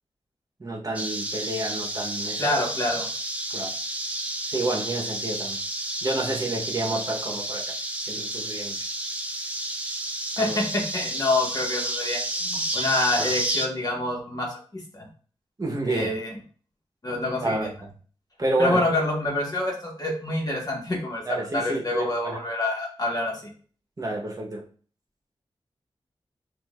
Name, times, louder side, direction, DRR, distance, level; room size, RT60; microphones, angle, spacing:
voice 1, 0.6-2.5 3.5-3.7 4.5-5.6 6.0-7.6 8.1-8.7 10.4-10.6 13.2-13.3 15.6-16.1 17.4-17.9 18.4-18.8 21.2-22.4 24.0-24.6, right 2 dB, 35° right, -1 dB, 1.0 m, -29 dB
sound 1, 0.9-13.7, right 1 dB, 15° right, 0.5 m, -31 dB
voice 2, 2.4-3.1 10.4-15.1 15.8-16.4 17.0-17.7 18.6-23.4, left 2 dB, 40° left, -1 dB, 1.3 m, -27 dB
6.0 x 2.6 x 2.4 m, 0.43 s
wide cardioid pair, 75°, 10 cm